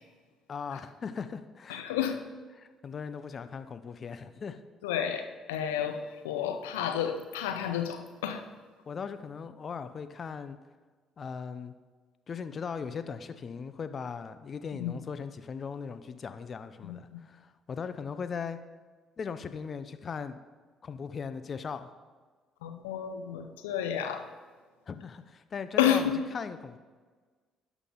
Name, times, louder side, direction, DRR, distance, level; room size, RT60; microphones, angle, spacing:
voice 1, 0.5-2.1 2.6-4.6 8.9-10.6 11.2-11.7 12.3-18.6 19.2-20.4 20.8-21.9 24.9-26.8, left 6 dB, 45° left, 11 dB, 0.6 m, -39 dB
voice 2, 1.7-2.2 4.8-8.4 14.8-15.0 16.8-17.2 22.6-24.2 25.8-26.2, left 9 dB, 85° left, 7 dB, 0.6 m, -30 dB
11.0 x 6.0 x 3.8 m, 1.5 s
hypercardioid pair, 50°, 0 cm